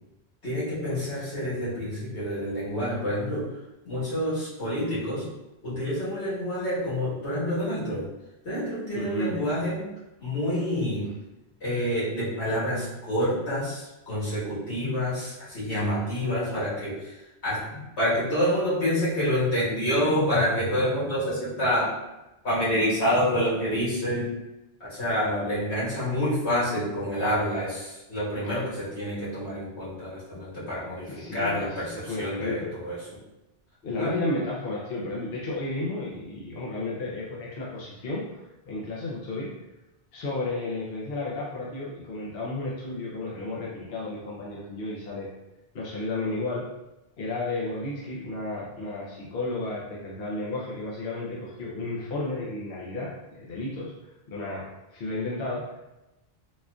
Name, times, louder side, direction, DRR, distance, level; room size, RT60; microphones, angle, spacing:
voice 1, 0.4-3.6 3.9-5.3 5.6-8.1 8.4-9.9 10.2-11.1 11.6-21.9 22.4-24.3 24.8-33.0 34.0-34.2, equal, 90° left, -10 dB, 1.8 m, -28 dB
voice 2, 8.9-9.4 25.3-25.5 31.1-32.7 33.8-39.5 40.1-45.3 45.7-46.7 47.2-55.8, left 2 dB, 65° left, -5 dB, 0.9 m, -33 dB
4.2 x 2.4 x 2.3 m, 0.97 s
omnidirectional pair, 1.1 m